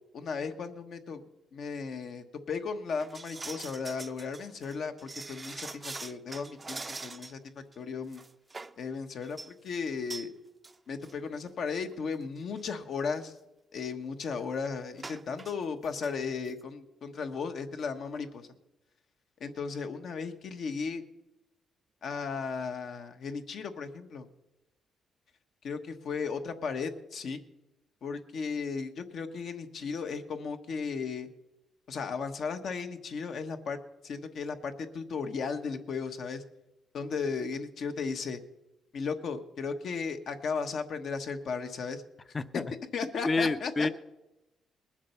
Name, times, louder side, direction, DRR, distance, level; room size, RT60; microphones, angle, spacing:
voice 1, 0.1-1.2 1.5-7.4 7.8-8.2 8.8-10.3 10.9-13.3 13.7-18.5 19.4-21.0 22.0-24.3 25.6-27.4 28.0-31.3 31.9-36.4 36.9-38.4 38.9-42.0 42.9-43.9, left 5 dB, 65° left, 7 dB, 1.2 m, -35 dB
sound 1, 3.0-7.4 7.7-7.8 8.1-8.8 9.2-9.5 10.1-10.3 10.6-10.8 11.0-11.1 11.9-12.0 12.4-12.6 15.0-15.5 15.8-16.1 16.5-16.6, right 3 dB, 25° right, 0.5 m, -43 dB
voice 2, 42.3-42.6 43.0-43.9, left 3 dB, 30° left, 13 dB, 0.6 m, -29 dB
20.5 x 7.4 x 5.7 m, 0.95 s
cardioid pair, 90°, 0 cm